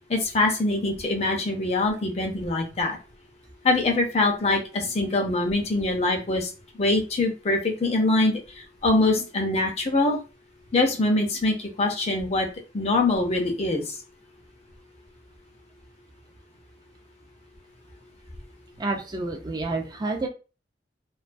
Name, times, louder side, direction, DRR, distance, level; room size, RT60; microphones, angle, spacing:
voice 1, 0.1-3.0 3.6-6.5 6.8-8.4 8.8-10.2 10.7-12.5 12.7-14.0, left 2 dB, 35° left, 2 dB, 0.5 m, -23 dB
voice 2, 18.8-20.3, right 3 dB, 20° right, 2 dB, 0.4 m, -29 dB
2.3 x 2.2 x 2.5 m, 0.32 s
head